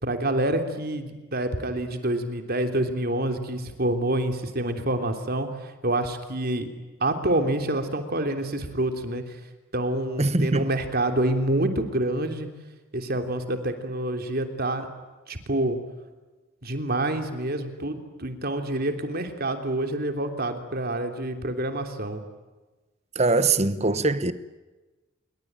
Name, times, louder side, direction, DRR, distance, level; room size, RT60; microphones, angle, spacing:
voice 1, 0.0-5.5 5.8-6.7 7.0-9.2 9.7-12.5 12.9-14.9 15.3-15.8 16.6-22.2, right 1 dB, 45° right, 3.3 m, -27 dB
voice 2, 10.2-10.7 23.1-24.3, right 3 dB, 30° right, 1.2 m, -22 dB
28.0 x 23.5 x 9.0 m
head